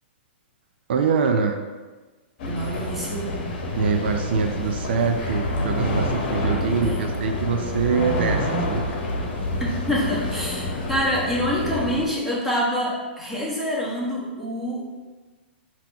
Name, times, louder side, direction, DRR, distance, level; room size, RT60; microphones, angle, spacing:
voice 1, 0.9-1.6 3.8-8.8, right 5 dB, 65° right, 5 dB, 0.4 m, -24 dB
sound 1, 2.4-12.1, left 1 dB, 55° left, 1.0 m, -27 dB
voice 2, 2.4-3.3 6.4-7.1 9.6-14.8, equal, 5° right, -7 dB, 1.3 m, -26 dB
3.9 x 3.0 x 4.6 m, 1.3 s
hypercardioid pair, 130°, 6 cm